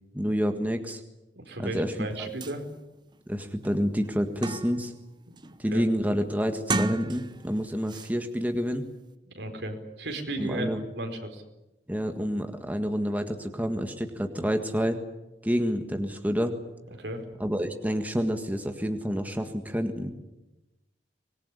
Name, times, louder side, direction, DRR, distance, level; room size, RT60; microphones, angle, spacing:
voice 1, 0.1-1.0 1.6-1.9 2.2-2.3 3.3-4.9 5.6-8.9 10.4-10.8 11.9-15.0 15.4-16.6 17.4-20.1, equal, 10° right, 6 dB, 1.7 m, -28 dB
voice 2, 1.4-2.6 5.3-5.4 5.7-5.9 9.3-11.4 17.0-17.2, right 1 dB, 75° right, 5 dB, 4.6 m, -35 dB
sound 1, 2.1-2.2 2.4-2.6 3.1-3.2 3.6-5.0 5.4-5.7 6.5-7.5 7.9-8.1, right 2 dB, 25° right, 1.1 m, -32 dB
25.0 x 20.5 x 9.9 m, 0.99 s
head